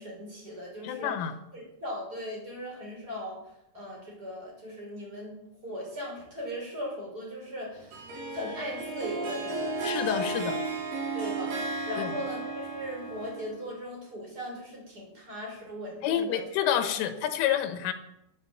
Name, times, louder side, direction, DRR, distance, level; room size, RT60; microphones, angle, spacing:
voice 1, 0.0-1.1 1.5-3.4 3.7-5.3 5.6-8.0 8.3-9.7 11.1-16.4 17.0-17.1, equal, 20° right, -2 dB, 5.9 m, -38 dB
voice 2, 0.8-1.3 9.8-10.6 12.0-12.1 16.0-17.9, left 10 dB, 90° left, 7 dB, 3.9 m, -28 dB
Harp, 7.9-13.7, right 3 dB, 50° right, 4.8 m, -34 dB
14.0 x 9.4 x 8.5 m, 0.85 s
omnidirectional pair, 5.6 m